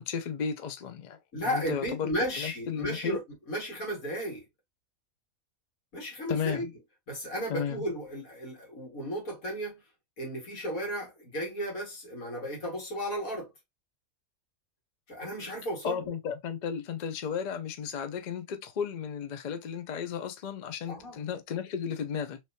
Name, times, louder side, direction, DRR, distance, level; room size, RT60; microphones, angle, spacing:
voice 1, 0.0-2.1 2.4-3.2 6.3-6.7 7.5-7.8 15.8-22.4, left 7 dB, 65° left, 0.4 m, -34 dB
voice 2, 1.3-4.5 5.9-6.7 7.1-9.8 10.2-13.5 15.1-16.1 20.9-21.2, equal, 85° left, 2.2 m, -34 dB
3.3 x 3.0 x 2.7 m
omnidirectional pair, 1.4 m